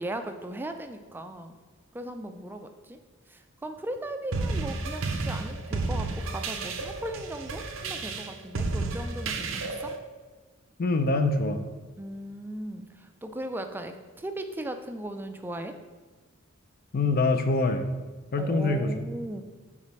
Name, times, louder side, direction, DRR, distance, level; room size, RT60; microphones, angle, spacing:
voice 1, 0.0-1.6 1.9-3.0 3.3-9.9 12.0-15.7 18.4-19.4, right 1 dB, 10° right, 7 dB, 0.3 m, -37 dB
sound 1, 4.3-10.0, right 3 dB, 80° right, 0.6 m, -32 dB
voice 2, 10.8-11.6 16.9-17.8 18.3-18.9, left 3 dB, 50° left, 7 dB, 0.5 m, -24 dB
4.9 x 4.1 x 5.4 m, 1.3 s
head